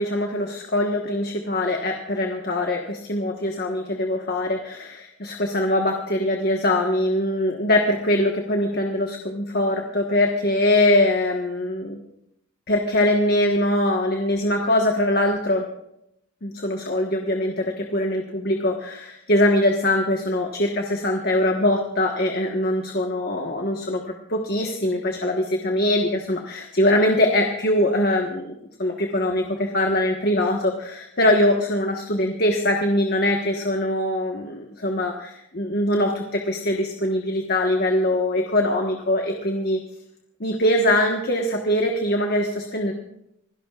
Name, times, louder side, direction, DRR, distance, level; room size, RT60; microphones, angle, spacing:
voice 1, 0.0-12.0 12.7-15.6 16.4-39.8 40.4-42.9, left 1 dB, 50° left, 2 dB, 1.4 m, -22 dB
27.0 x 17.5 x 2.5 m, 0.80 s
head